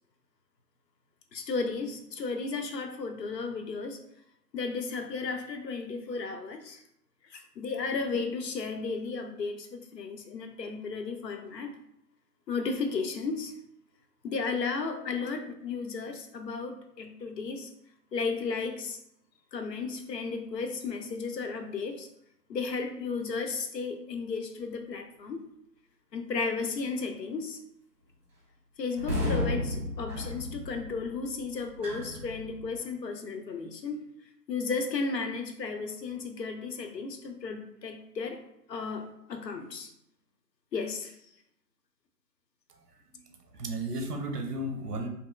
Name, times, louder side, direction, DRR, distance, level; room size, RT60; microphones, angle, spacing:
voice 1, 1.3-4.0 4.5-6.8 7.2-11.8 12.5-13.6 14.2-17.7 18.1-19.0 19.5-22.1 22.5-25.5 26.1-27.6 28.8-34.1 34.5-39.9 40.7-41.2, left 4 dB, 80° left, 6 dB, 0.7 m, -34 dB
sound 1, 28.9-32.8, left 1 dB, 50° right, 1.0 m, -33 dB
voice 2, 42.7-43.2 43.5-45.1, right 1 dB, 70° right, 5 dB, 0.7 m, -35 dB
2.8 x 2.8 x 2.3 m, 0.77 s
figure-of-eight pair, 170°, 49 cm